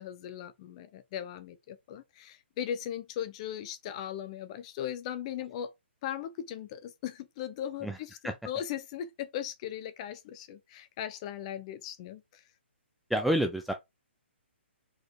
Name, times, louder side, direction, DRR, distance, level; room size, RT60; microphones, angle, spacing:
voice 1, 0.0-5.7 6.0-8.2 8.4-12.2, left 10 dB, 30° left, 0.9 m, -38 dB
voice 2, 13.1-13.7, equal, ahead, 0.5 m, -28 dB
4.7 x 4.2 x 4.8 m
hypercardioid pair, 155°, 7 cm